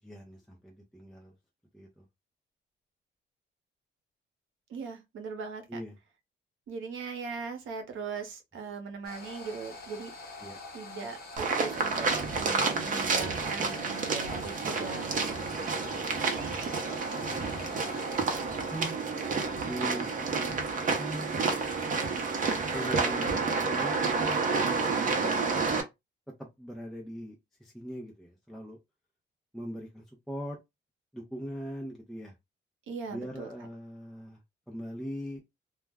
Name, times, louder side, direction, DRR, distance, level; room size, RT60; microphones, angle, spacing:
voice 1, 0.0-1.3 1.7-2.0 5.7-6.0 10.4-10.6 17.1-18.0 18.5-19.0 19.6-20.7 20.9-21.4 22.6-24.5 25.0-25.5 26.4-27.3 27.6-28.8 29.5-30.6 31.1-32.3 33.1-34.4 34.7-35.4, equal, ahead, 0.5 m, -41 dB
voice 2, 4.7-5.8 6.7-10.1 10.7-15.7 32.9-33.5, right 5 dB, 85° right, 0.8 m, -39 dB
sound 1, 9.0-18.2, left 2 dB, 50° left, 1.0 m, -45 dB
sound 2, 11.4-25.8, right 4 dB, 40° right, 0.6 m, -30 dB
2.3 x 2.1 x 3.3 m
cardioid pair, 145°, 20 cm